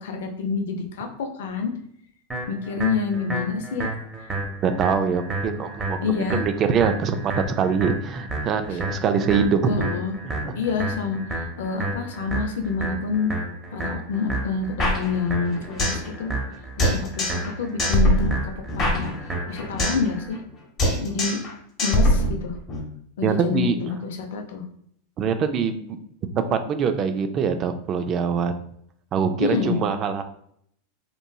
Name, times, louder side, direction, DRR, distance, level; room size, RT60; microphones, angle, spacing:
voice 1, 0.0-1.7 2.5-3.9 6.0-6.4 8.7-8.8 9.6-10.1 10.5-13.3 13.7-16.3 16.8-18.3 18.8-19.1 19.5-20.4 21.0-21.4 21.8-22.5 23.2-24.6 29.4-29.8, left 5 dB, 80° left, 4 dB, 0.5 m, -27 dB
sound 1, 2.3-20.3, right 2 dB, 15° right, 0.7 m, -31 dB
voice 2, 4.6-9.8 10.2-10.6 23.2-23.8 25.2-26.0 26.4-28.5 29.1-30.2, right 6 dB, 35° right, 8 dB, 0.3 m, -24 dB
sound 2, 14.8-16.1 16.3-16.4 16.8-17.5 17.8-20.1 20.3-20.5 20.8-21.5 21.8-22.8, equal, 35° left, 0.9 m, -23 dB
2.9 x 2.5 x 2.2 m, 0.69 s
hypercardioid pair, 115°, 0 cm